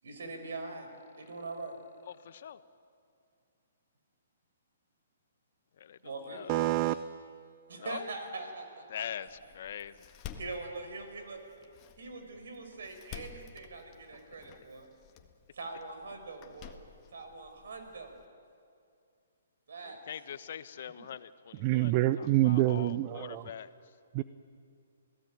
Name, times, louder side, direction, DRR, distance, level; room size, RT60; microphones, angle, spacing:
voice 1, 0.0-0.9 1.2-1.8 6.0-6.4 7.7-8.9 10.4-11.4 12.0-14.9 15.5-16.8 17.1-18.2 19.7-20.0, right 3 dB, 70° right, 6 dB, 5.4 m, -42 dB
voice 2, 2.0-2.6 5.7-6.5 7.8-8.1 8.9-10.3 19.8-24.0, left 9 dB, 55° left, 13 dB, 1.1 m, -43 dB
voice 3, 6.5-7.0 21.6-23.4 24.1-24.2, right 16 dB, 35° right, 13 dB, 0.7 m, -26 dB
Door, 9.3-18.3, left 8 dB, 30° left, 1.7 m, -52 dB
28.0 x 17.5 x 9.3 m, 2.4 s
hypercardioid pair, 140°, 0 cm